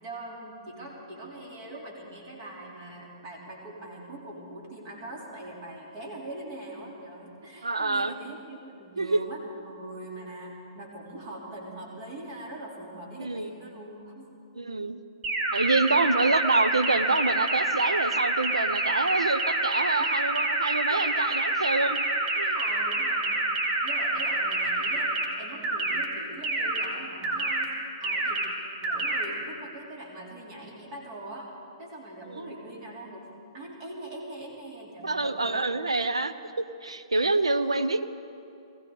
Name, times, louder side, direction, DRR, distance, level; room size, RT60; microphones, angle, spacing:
voice 1, 0.0-14.3 20.0-20.1 20.9-21.3 22.5-23.5 23.8-27.7 28.0-28.5 28.8-35.7 37.5-37.7, right 1 dB, 45° right, -2 dB, 3.3 m, -42 dB
voice 2, 7.6-8.1 9.0-9.2 13.2-13.6 14.5-15.0 15.5-22.0 22.3-22.5 32.3-32.4 35.0-38.0, right 3 dB, 85° right, 10 dB, 0.7 m, -26 dB
sound 1, 15.2-25.2 25.6-26.0 26.4-26.8 27.2-27.6 28.0-28.4 28.8-29.2, right 2 dB, 30° right, 1.9 m, -27 dB
20.5 x 15.5 x 3.9 m, 2.6 s
figure-of-eight pair, 120°, 3 cm